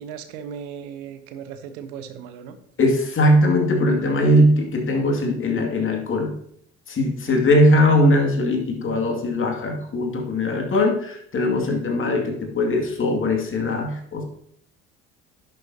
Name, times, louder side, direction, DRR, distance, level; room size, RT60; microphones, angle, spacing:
voice 1, 0.0-2.6 7.3-7.4, right 8 dB, 70° right, 9 dB, 1.0 m, -37 dB
voice 2, 2.8-6.3 6.9-14.2, left 1 dB, 35° left, 2 dB, 2.3 m, -20 dB
11.0 x 7.1 x 2.8 m, 0.66 s
hypercardioid pair, 60°, 34 cm